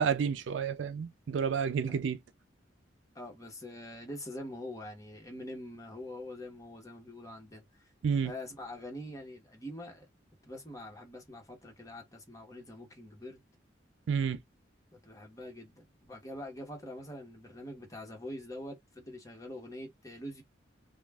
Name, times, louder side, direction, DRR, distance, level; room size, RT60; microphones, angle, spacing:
voice 1, 0.0-2.2 8.0-8.3 14.1-14.4, right 6 dB, 70° right, 0.4 m, -30 dB
voice 2, 3.1-7.6 8.2-10.1 10.4-13.4 14.9-20.4, left 1 dB, 20° left, 1.0 m, -44 dB
2.3 x 2.2 x 3.3 m
head